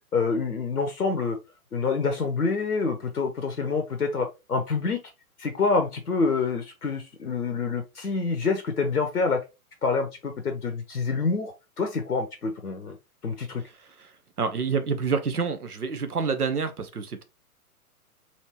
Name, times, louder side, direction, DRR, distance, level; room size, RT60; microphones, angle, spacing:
voice 1, 0.1-1.4 1.7-5.0 5.4-9.4 9.8-13.0 13.2-13.6, left 4 dB, 85° left, 0.8 m, -27 dB
voice 2, 14.4-17.2, right 5 dB, 80° right, 0.9 m, -27 dB
4.3 x 2.9 x 2.9 m
figure-of-eight pair, 115°, 44 cm